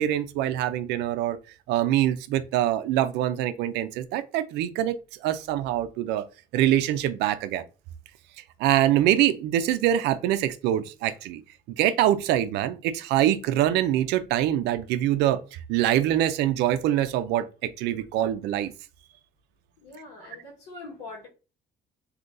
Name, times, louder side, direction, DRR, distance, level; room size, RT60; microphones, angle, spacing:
voice 1, 0.0-1.4 1.7-6.2 6.5-7.6 8.6-11.4 11.7-18.7, right 12 dB, 85° right, 0.4 m, -24 dB
voice 2, 19.8-21.3, left 3 dB, 85° left, 1.4 m, -43 dB
3.7 x 2.8 x 2.5 m
cardioid pair, 110°, 17 cm